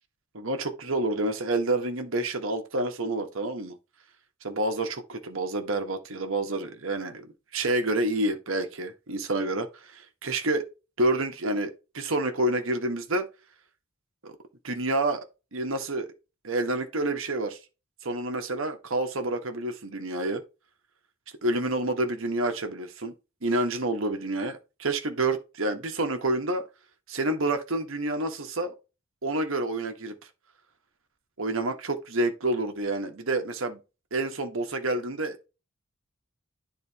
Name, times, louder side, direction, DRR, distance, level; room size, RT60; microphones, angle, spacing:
voice 1, 0.3-3.8 4.4-10.7 11.0-13.2 14.2-14.4 14.6-15.2 15.5-16.1 16.4-17.6 18.0-20.4 21.4-23.1 23.4-26.6 27.1-28.7 29.2-30.2 31.4-33.8 34.1-35.5, right 2 dB, 65° right, 1.3 m, -28 dB
10.5 x 4.1 x 2.9 m
head